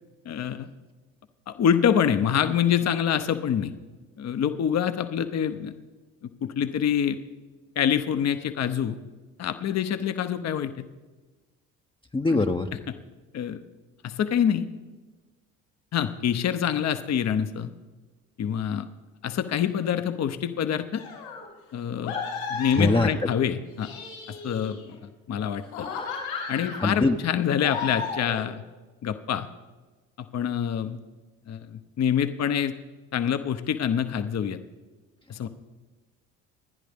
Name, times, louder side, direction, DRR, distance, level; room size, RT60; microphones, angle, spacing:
voice 1, 0.2-0.7 1.5-3.7 4.2-5.7 6.4-7.2 7.8-9.0 9.4-10.9 12.3-12.4 12.9-13.0 13.3-13.6 14.0-14.7 15.9-17.7 18.4-18.9 19.2-21.0 21.7-22.2 22.5-23.9 24.4-24.8 25.3-25.9 26.5-28.6 29.0-29.5 30.2-31.0 31.5-32.8 33.1-34.6 35.3-35.5, left 8 dB, 45° left, 10 dB, 0.9 m, -26 dB
voice 2, 12.1-12.7 22.8-23.1 26.8-27.2, left 2 dB, 15° left, 4 dB, 0.8 m, -22 dB
sound 1, 20.9-21.5 22.0-23.3 23.7-24.9 25.5-26.9 27.6-28.4, left 5 dB, 85° left, 4.7 m, -34 dB
26.0 x 10.0 x 3.6 m, 1.3 s
hypercardioid pair, 60°, 39 cm